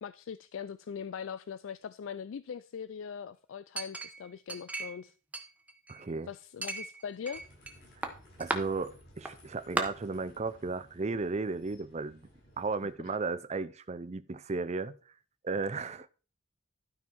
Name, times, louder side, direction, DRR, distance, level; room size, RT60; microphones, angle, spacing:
voice 1, 0.0-5.1 6.3-7.4 13.0-13.2, left 7 dB, 75° left, 0.4 m, -41 dB
Chink clink, 3.8-5.0 5.3-6.1 6.6-7.7 8.0-8.6 9.3-9.4 9.8-9.9, right 2 dB, 5° right, 1.1 m, -36 dB
voice 2, 5.9-6.3 8.4-12.3 12.6-15.0 15.4-16.1, right 3 dB, 35° right, 0.6 m, -34 dB
sound 1, 7.3-12.9, equal, 50° left, 6.0 m, -58 dB
12.0 x 5.5 x 4.5 m
head